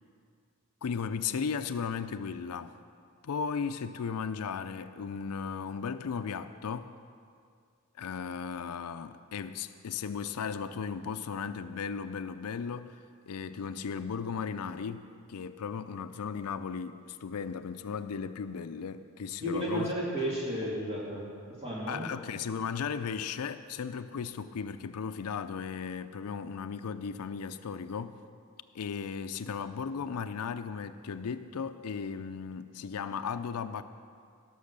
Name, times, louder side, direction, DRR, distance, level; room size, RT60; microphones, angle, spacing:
voice 1, 0.8-2.7 3.2-6.9 8.0-13.0 13.3-19.9 21.9-28.2 28.7-33.8, left 6 dB, 85° left, 10 dB, 0.5 m, -36 dB
voice 2, 19.4-22.1, equal, 30° right, -6 dB, 2.1 m, -33 dB
17.0 x 6.3 x 6.6 m, 2.2 s
head